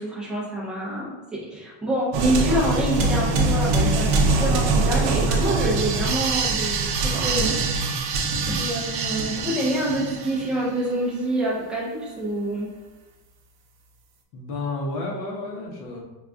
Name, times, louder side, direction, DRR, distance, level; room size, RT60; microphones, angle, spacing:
voice 1, 0.0-4.1 4.4-7.9 8.5-12.7, right 1 dB, ahead, -8 dB, 0.3 m, -26 dB
sound 1, 2.1-10.6, right 3 dB, 55° right, 0.6 m, -23 dB
voice 2, 14.3-16.0, left 2 dB, 55° left, -1 dB, 0.8 m, -31 dB
4.5 x 2.3 x 2.5 m, 1.1 s
cardioid pair, 175°, 46 cm